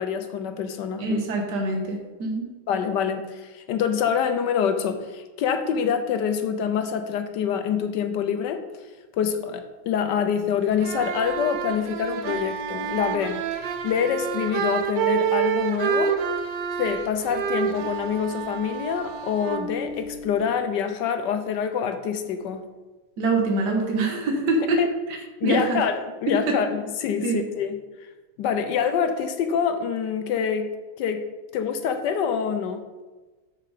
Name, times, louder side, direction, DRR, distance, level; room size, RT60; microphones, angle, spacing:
voice 1, 0.0-1.2 2.7-8.6 9.2-16.2 16.8-22.6 24.8-24.9 25.4-27.8 28.4-30.7 31.0-31.3 31.5-32.8, left 7 dB, 70° left, 8 dB, 1.2 m, -26 dB
voice 2, 1.0-2.5 23.2-24.8 25.4-25.8 26.5-26.6 27.2-27.4, right 3 dB, 55° right, 2 dB, 1.9 m, -24 dB
sound 1, 10.7-20.5, right 8 dB, 70° right, 1.2 m, -28 dB
6.9 x 6.9 x 4.9 m, 1.2 s
omnidirectional pair, 2.3 m